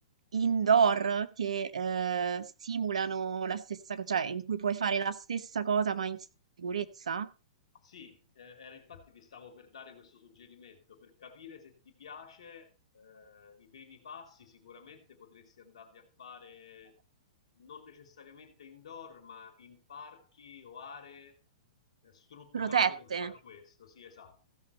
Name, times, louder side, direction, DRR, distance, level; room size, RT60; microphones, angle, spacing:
voice 1, 0.3-6.2 6.6-7.3 22.5-23.3, right 6 dB, 80° right, 14 dB, 0.9 m, -30 dB
voice 2, 7.7-17.3 17.6-21.4 22.0-24.4, left 6 dB, 70° left, 8 dB, 2.6 m, -51 dB
15.5 x 6.4 x 4.1 m, 0.30 s
hypercardioid pair, 125°, 3 cm